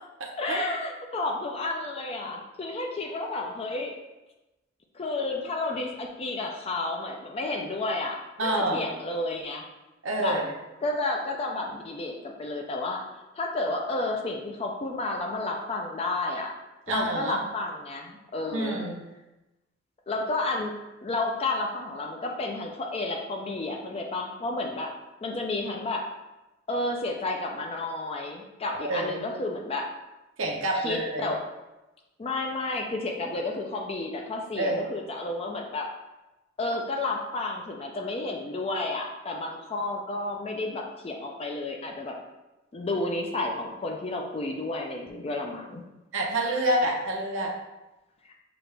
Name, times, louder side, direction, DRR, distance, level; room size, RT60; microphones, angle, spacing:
voice 1, 0.4-3.9 4.9-9.6 10.2-10.4 10.8-13.0 13.3-16.5 16.9-18.8 20.1-20.7 21.0-24.9 25.2-26.0 26.7-29.9 30.8-31.4 32.2-35.9 36.6-42.2 42.7-45.8 48.2-48.3, left 2 dB, 30° left, 1 dB, 0.4 m, -31 dB
voice 2, 8.4-8.8 10.0-10.5 16.9-17.4 18.5-19.0 28.9-29.2 30.4-31.3 34.6-34.8 46.1-47.5, right 1 dB, 70° right, -1 dB, 0.8 m, -27 dB
5.9 x 2.4 x 3.3 m, 1.0 s
head